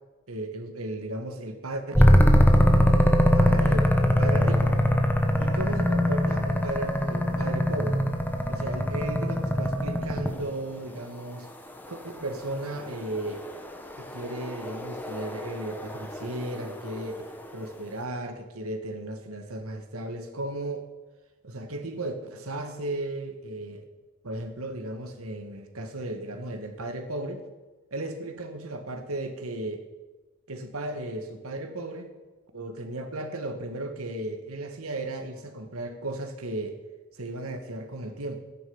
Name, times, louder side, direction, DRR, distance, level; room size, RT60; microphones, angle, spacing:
voice 1, 0.3-2.4 3.4-4.8 5.4-8.0 8.5-11.5 11.9-13.5 14.0-17.2 17.5-20.9 21.4-23.9 24.2-27.4 27.9-29.9 30.5-32.1 32.5-36.8 37.1-38.4, right 1 dB, 90° right, 7 dB, 1.6 m, -35 dB
sound 1, 1.9-10.5 12.8-17.3, equal, 10° left, 1.2 m, -22 dB
13.0 x 10.0 x 7.1 m, 1.2 s
head